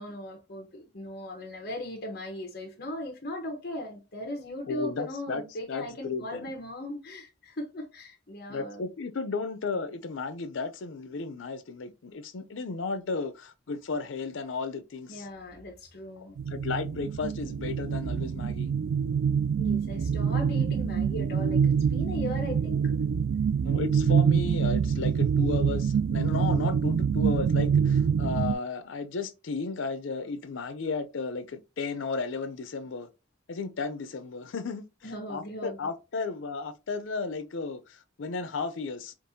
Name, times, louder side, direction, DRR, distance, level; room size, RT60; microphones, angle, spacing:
voice 1, 0.0-8.9 15.1-16.4 19.6-22.9 35.0-35.9, left 1 dB, 55° left, 0.9 m, -38 dB
voice 2, 4.7-5.4 5.7-6.5 8.5-15.2 16.4-18.7 23.6-33.1 33.5-34.8 35.3-39.1, left 4 dB, 85° left, 0.5 m, -34 dB
sound 1, 16.4-28.5, right 7 dB, 90° right, 0.3 m, -26 dB
5.2 x 2.4 x 2.7 m
head